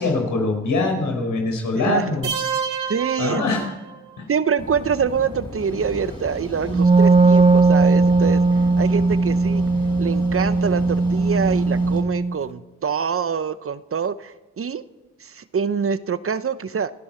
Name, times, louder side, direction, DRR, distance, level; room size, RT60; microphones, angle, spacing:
voice 1, 0.0-2.3 3.2-3.7, left 3 dB, 85° left, 2 dB, 5.0 m, -23 dB
voice 2, 1.8-2.2 2.9-3.6 4.3-8.4 8.8-9.6 10.0-14.8 15.2-16.9, right 6 dB, 45° right, 14 dB, 0.9 m, -25 dB
sound 1, 2.2-4.2, right 6 dB, 75° right, 1.8 m, -28 dB
sound 2, 4.6-12.0, left 1 dB, 15° left, 5.3 m, -35 dB
Wind instrument woodwind instrument, 6.7-12.4, right 3 dB, 20° right, 1.3 m, -18 dB
28.5 x 11.0 x 4.5 m, 1.2 s
cardioid pair, 60°, 31 cm